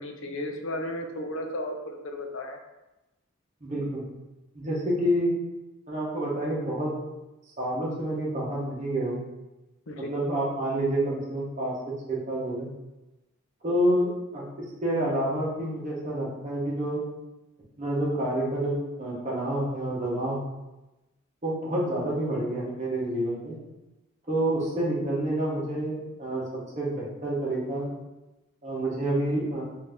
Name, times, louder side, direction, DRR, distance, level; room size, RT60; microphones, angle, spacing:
voice 1, 0.0-2.6 9.9-10.1, left 1 dB, 65° left, 4 dB, 0.5 m, -34 dB
voice 2, 3.6-4.0 4.5-5.3 5.9-7.0 7.6-9.2 10.0-11.8 12.1-12.7 13.6-17.0 17.8-20.4 21.4-23.6 24.3-26.4 26.7-27.9 28.6-29.6, right 1 dB, 35° right, -5 dB, 1.0 m, -28 dB
3.9 x 2.7 x 3.5 m, 1.0 s
head